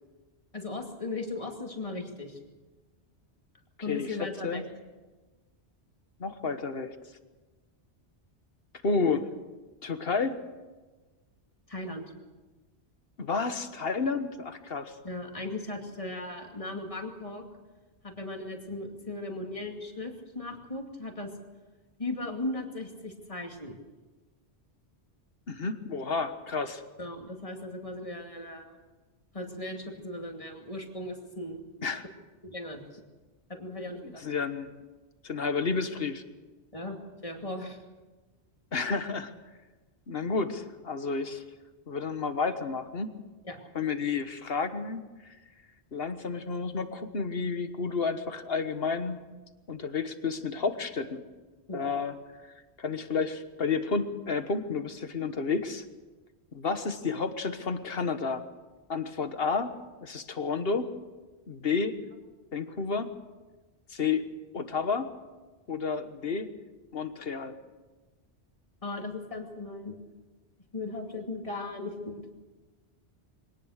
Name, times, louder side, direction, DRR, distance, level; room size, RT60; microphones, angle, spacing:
voice 1, 0.5-2.4 3.8-4.6 11.7-12.1 15.0-17.5 18.0-21.3 22.0-23.8 27.0-28.8 29.3-31.6 32.4-33.0 33.5-34.2 36.7-37.8 43.4-43.6 51.7-51.8 68.8-70.0 70.7-72.2, left 2 dB, 30° left, 2 dB, 2.6 m, -37 dB
voice 2, 3.9-4.6 6.2-6.9 8.8-9.3 9.8-10.4 13.2-15.0 25.5-26.8 31.8-32.0 34.0-34.7 35.2-36.2 38.7-39.3 40.1-41.4 41.9-43.1 43.7-45.4 45.9-49.2 49.7-51.2 51.7-52.2 52.8-55.8 56.5-58.4 58.9-59.7 60.0-60.9 61.5-62.0 62.5-63.1 63.9-64.2 64.5-65.1 65.7-66.5 66.9-67.5, left 4 dB, 60° left, 9 dB, 1.6 m, -31 dB
24.0 x 18.5 x 6.6 m, 1.2 s
omnidirectional pair, 1.1 m